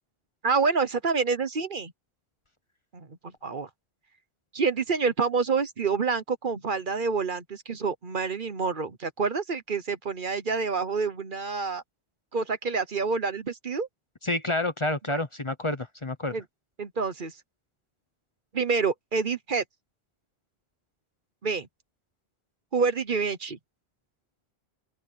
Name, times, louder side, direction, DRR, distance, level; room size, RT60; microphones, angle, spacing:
voice 1, 0.4-1.9 2.9-3.2 3.4-3.7 4.5-11.8 12.3-13.9 15.1-15.2 16.3-16.4 16.8-17.3 18.5-19.6 21.4-21.7 22.7-23.6, right 5 dB, 50° right, 1.2 m, -27 dB
voice 2, 14.2-16.4, left 2 dB, 30° left, 1.0 m, -29 dB
open air
omnidirectional pair, 1.1 m